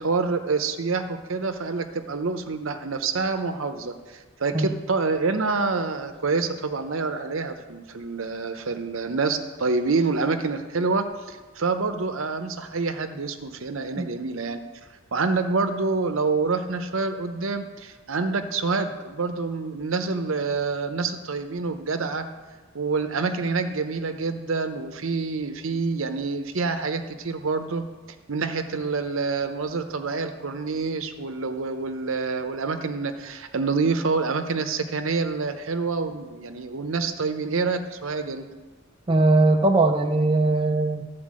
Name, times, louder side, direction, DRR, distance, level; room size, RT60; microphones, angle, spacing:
voice 1, 0.0-14.6 15.1-22.2 22.7-27.8 28.3-38.4, right 4 dB, 65° right, 8 dB, 0.7 m, -27 dB
voice 2, 39.1-41.1, right 2 dB, 20° right, 3 dB, 0.4 m, -20 dB
12.5 x 4.5 x 7.5 m, 1.3 s
head